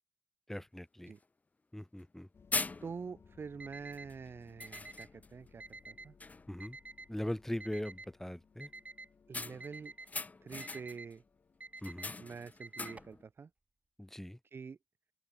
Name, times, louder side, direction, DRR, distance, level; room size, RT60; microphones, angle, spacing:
voice 1, 0.5-1.1 1.7-2.3 6.5-6.8 7.1-8.7 11.8-12.1 14.0-14.4, left 1 dB, 10° left, 1.3 m, -40 dB
sound 1, 0.7-0.8 1.2-1.3 2.0-2.2 2.5-3.2 3.9-4.1 4.6-5.4 5.8-5.9 6.2-6.6 9.3-11.1 11.8-13.2, left 3 dB, 35° left, 0.5 m, -41 dB
sound 2, 2.3-12.7, left 5 dB, 70° left, 6.1 m, -64 dB
voice 2, 2.8-6.1 9.3-9.9 10.4-11.2 12.2-13.5 14.5-14.8, right 5 dB, 60° right, 0.9 m, -46 dB
Alarm, 3.6-4.1 4.6-5.1 5.6-6.1 6.6-7.1 7.6-8.1 8.6-9.1 9.6-10.1 10.6-11.1 11.6-12.1 12.6-13.2, right 2 dB, 35° right, 2.5 m, -49 dB
open air
cardioid pair, 45°, 4 cm